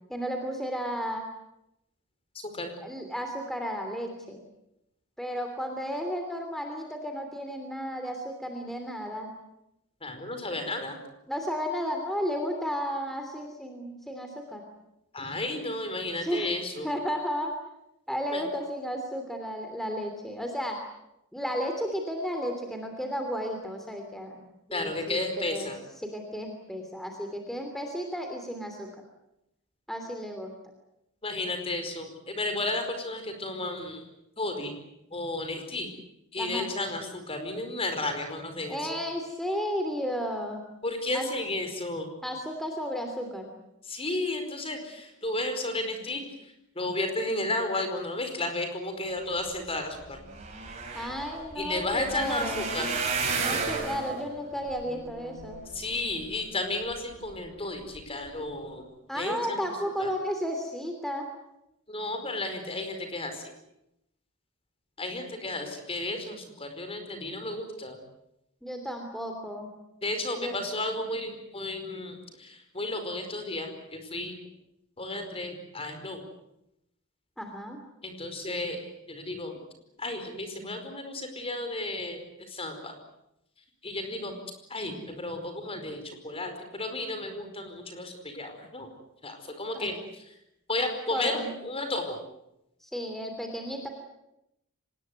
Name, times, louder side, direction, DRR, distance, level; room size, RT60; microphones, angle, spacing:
voice 1, 0.1-1.3 2.8-4.4 5.2-9.3 11.3-14.6 16.2-16.5 16.8-17.5 18.1-20.8 21.3-24.4 24.7-25.7 26.0-28.9 29.9-30.5 36.4-36.7 38.7-40.6 41.1-41.3 42.2-43.5 50.9-52.7 53.4-55.6 59.1-61.3 68.6-69.7 70.4-70.6 77.4-77.8 89.7-89.9 91.1-91.5 92.8-93.9, equal, ahead, 4 dB, 3.0 m, -33 dB
voice 2, 10.0-11.0 15.1-16.9 18.3-18.4 24.7-25.8 31.2-34.0 34.4-34.7 35.1-35.9 36.3-38.8 40.8-42.1 43.9-46.3 46.7-50.2 51.6-52.9 55.7-58.8 59.1-59.7 60.0-60.1 61.9-63.5 65.0-68.0 70.0-74.4 75.0-76.2 78.0-79.6 80.0-82.9 83.8-84.3 84.7-88.9 89.2-90.0 90.7-92.2, left 2 dB, 25° left, 6 dB, 4.9 m, -33 dB
sound 1, 49.7-49.8 50.0-56.4 56.9-57.4 57.8-58.0 58.3-58.4, right 4 dB, 30° right, 6.8 m, -34 dB
25.5 x 20.0 x 9.5 m, 0.84 s
head